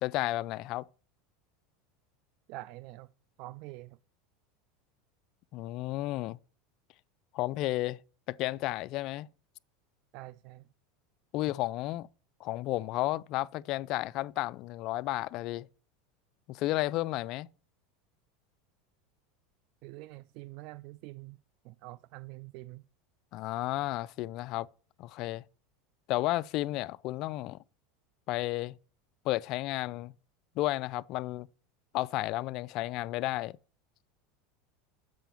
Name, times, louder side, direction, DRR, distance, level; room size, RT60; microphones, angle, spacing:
voice 1, 0.0-0.8 5.5-6.4 7.3-8.0 8.3-9.3 11.3-12.1 12.4-15.7 16.5-17.5 23.3-24.7 25.0-25.4 26.1-27.6 28.3-28.7 29.3-30.1 30.6-31.5 31.9-33.6, left 17 dB, 50° left, 0.3 m, -32 dB
voice 2, 2.5-3.1 3.4-4.0 10.1-10.6 19.8-21.4 21.6-22.8, right 18 dB, 55° right, 0.3 m, -45 dB
7.6 x 5.6 x 7.0 m
supercardioid pair, 130°, 0 cm